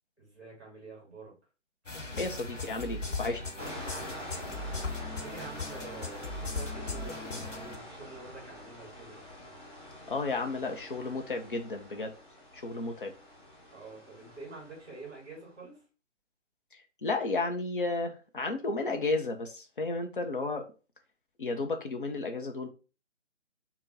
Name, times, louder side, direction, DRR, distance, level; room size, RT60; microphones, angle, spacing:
voice 1, 0.2-1.3 3.8-4.7 5.2-9.2 13.7-15.8, right 3 dB, 20° right, 1.9 m, -48 dB
sound 1, 1.9-7.8, left 3 dB, 85° left, 1.1 m, -38 dB
voice 2, 2.1-3.4 10.1-12.1 12.5-13.1 16.7-20.7 21.4-22.7, left 3 dB, 45° left, 0.7 m, -33 dB
sound 2, 3.6-15.3, left 1 dB, 20° left, 1.4 m, -46 dB
3.5 x 2.2 x 4.0 m
figure-of-eight pair, 145°, 37 cm